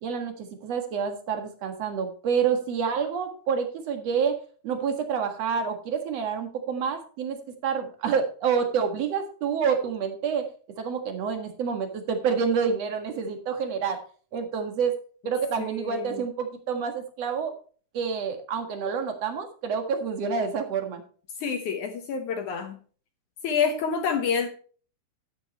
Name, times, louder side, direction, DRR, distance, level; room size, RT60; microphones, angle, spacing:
voice 1, 0.0-10.5 10.8-14.0 14.3-15.0 15.2-17.5 17.9-21.0, right 6 dB, 50° right, 6 dB, 2.2 m, -28 dB
voice 2, 15.6-16.2 21.4-22.8 23.4-24.5, left 6 dB, 65° left, 6 dB, 2.0 m, -28 dB
12.0 x 9.5 x 3.0 m, 0.40 s
omnidirectional pair, 4.6 m